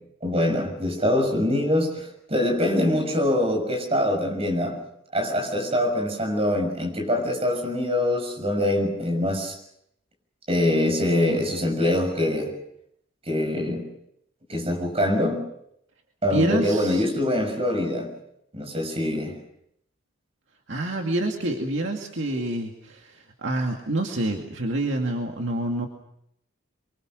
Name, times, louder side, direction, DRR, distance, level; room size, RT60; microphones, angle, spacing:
voice 1, 0.2-1.9 2.3-4.7 5.1-9.5 10.5-12.5 13.3-13.8 14.5-15.4 16.2-18.1 18.5-19.3, left 1 dB, 30° right, 2 dB, 6.6 m, -24 dB
voice 2, 16.3-17.0 20.7-25.9, right 1 dB, 60° right, 1 dB, 2.3 m, -27 dB
26.5 x 24.0 x 6.4 m, 0.74 s
head